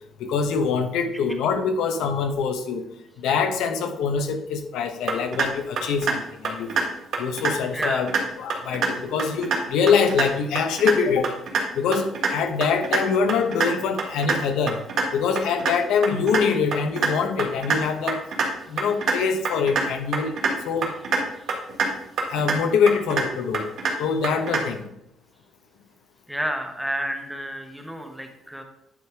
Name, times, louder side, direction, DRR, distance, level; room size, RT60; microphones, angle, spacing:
voice 1, 0.2-2.8 3.2-6.7 7.2-8.1 8.4-11.3 11.8-14.8 15.1-18.2 18.7-20.3 20.6-20.9 22.3-23.7 24.0-24.9, left 5 dB, 85° left, 7 dB, 0.8 m, -24 dB
sound 1, 5.1-5.5 5.8-6.2 6.4-6.8 7.1-7.5 7.8-8.2 8.5-8.9 9.2-9.6 9.9-10.2 10.5-10.9 11.2-11.6 11.9-12.3 12.6-13.0 13.3-13.7 14.0-14.4 14.7-15.0 15.3-15.7 16.0-16.4 16.7-17.1 17.4-17.8 18.1-18.5 18.8-19.1 19.4-19.8 20.1-20.5 20.8-21.2 21.5-21.9 22.2-22.5 22.9-23.3 23.5-23.9 24.2-24.6, right 5 dB, 55° right, 1.7 m, -24 dB
voice 2, 7.7-8.1 26.3-28.6, equal, 5° right, 5 dB, 0.8 m, -30 dB
9.7 x 4.6 x 3.5 m, 0.79 s
cardioid pair, 160°, 0 cm